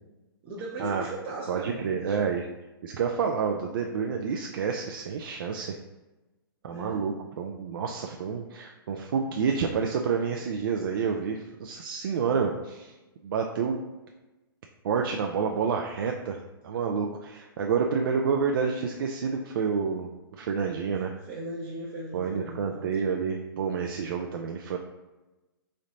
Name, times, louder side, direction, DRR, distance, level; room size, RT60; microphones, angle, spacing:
voice 1, 0.4-2.4 6.7-7.1 21.2-22.9, right 1 dB, 35° right, -5 dB, 0.7 m, -38 dB
voice 2, 1.5-2.5 2.8-5.7 6.6-12.9 13.2-13.8 14.8-16.4 16.6-21.1 22.1-24.8, right 6 dB, 65° right, 2 dB, 0.4 m, -29 dB
3.8 x 3.2 x 2.7 m, 1.1 s
hypercardioid pair, 130°, 12 cm